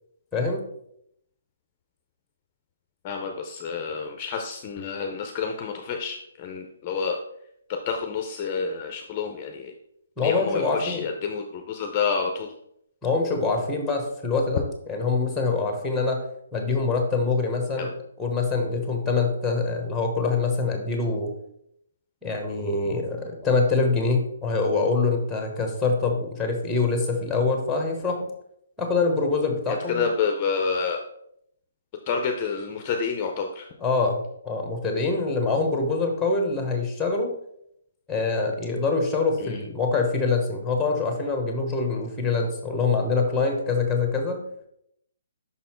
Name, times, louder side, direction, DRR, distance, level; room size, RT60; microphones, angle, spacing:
voice 1, 0.3-0.6 10.2-11.1 13.0-16.2 16.5-17.9 18.2-21.3 22.2-28.2 28.8-30.1 33.8-37.3 38.1-44.4, left 4 dB, 5° left, 3 dB, 1.1 m, -25 dB
voice 2, 3.0-7.2 7.9-9.7 10.2-12.5 17.8-17.9 29.9-31.0 32.1-33.7 39.4-39.6, left 5 dB, 25° left, 4 dB, 0.6 m, -28 dB
5.7 x 4.0 x 4.4 m, 0.74 s
hypercardioid pair, 160°, 0 cm